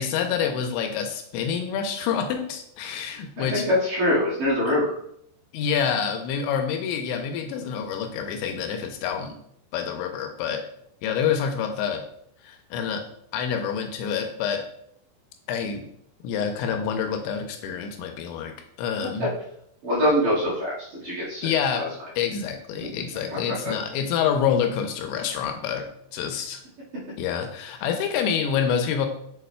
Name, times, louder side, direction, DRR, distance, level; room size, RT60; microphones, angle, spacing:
voice 1, 0.0-3.6 5.5-9.4 9.7-10.6 11.0-12.0 12.4-13.0 13.3-14.6 15.5-15.9 16.2-18.5 18.8-19.3 21.4-21.8 22.2-26.6 27.2-29.1, left 7 dB, 85° left, 5 dB, 2.9 m, -27 dB
voice 2, 3.4-5.0 19.8-21.5 21.7-21.9 23.3-23.7, left 1 dB, 55° right, -8 dB, 3.0 m, -24 dB
6.9 x 6.6 x 2.2 m, 0.70 s
omnidirectional pair, 5.3 m